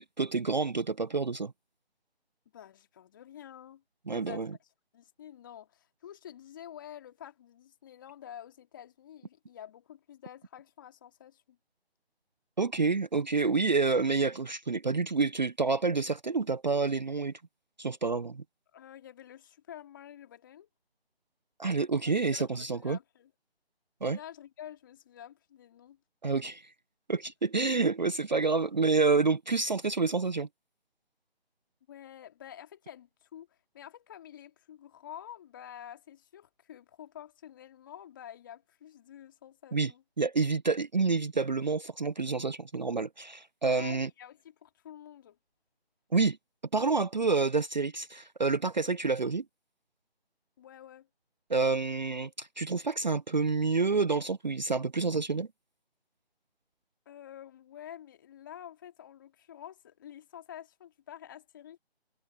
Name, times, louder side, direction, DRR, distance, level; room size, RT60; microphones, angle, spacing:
voice 1, 0.0-1.5 4.1-4.5 12.6-17.3 17.8-18.4 21.6-23.0 24.0-24.2 26.2-26.7 27.1-30.5 39.7-39.9 40.2-44.1 46.1-46.4 46.7-49.4 51.5-55.5, right 4 dB, 45° right, 0.6 m, -28 dB
voice 2, 2.5-3.8 4.1-4.7 4.9-11.6 18.7-20.7 22.0-23.3 24.1-26.0 31.9-40.0 43.7-45.4 50.6-51.1 57.1-61.8, left 10 dB, 20° left, 2.2 m, -49 dB
figure-of-eight pair, 155°, 32 cm